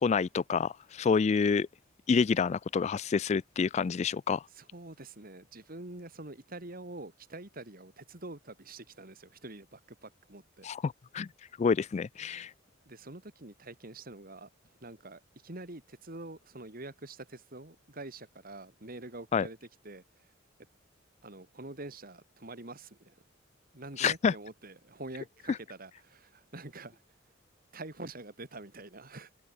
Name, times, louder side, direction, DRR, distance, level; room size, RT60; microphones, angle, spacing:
voice 1, 0.0-1.7 2.1-4.4 10.6-11.3 11.6-12.5 19.3-19.5 24.0-24.3, left 5 dB, 35° left, 0.3 m, -28 dB
voice 2, 4.5-10.7 12.9-14.5 14.8-19.6 19.8-20.3 21.2-23.2 23.7-27.0 27.7-29.3, right 2 dB, 45° right, 2.7 m, -46 dB
head